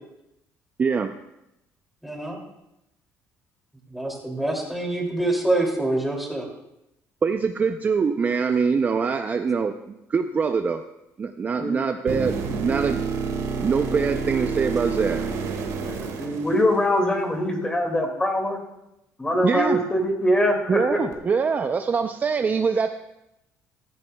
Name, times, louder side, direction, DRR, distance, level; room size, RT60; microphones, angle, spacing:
voice 1, 0.8-1.1 7.2-10.8 11.2-13.0 13.6-15.3 19.4-19.8 20.7-23.0, right 5 dB, 30° right, 7 dB, 0.4 m, -24 dB
voice 2, 2.0-2.4 3.9-6.5, right 2 dB, ahead, 0 dB, 2.6 m, -25 dB
voice 3, 11.6-11.9 15.9-18.6 19.2-21.0, left 1 dB, 15° left, 3 dB, 2.1 m, -23 dB
sound 1, 12.1-17.1 21.1-21.2, right 5 dB, 70° right, 1.8 m, -29 dB
15.5 x 13.5 x 2.2 m, 0.87 s
cardioid pair, 115°, 6 cm